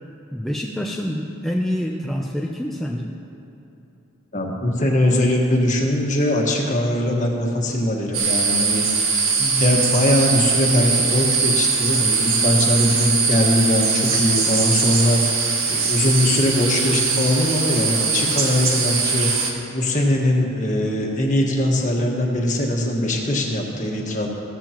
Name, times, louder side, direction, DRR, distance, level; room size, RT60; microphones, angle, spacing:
voice 1, 0.3-3.2, equal, ahead, -1 dB, 0.4 m, -26 dB
voice 2, 4.3-8.9 9.4-24.3, left 1 dB, 35° left, -1 dB, 1.5 m, -21 dB
sound 1, 8.1-19.5, right 5 dB, 70° right, 1.6 m, -21 dB
16.0 x 14.5 x 3.0 m, 2.9 s
head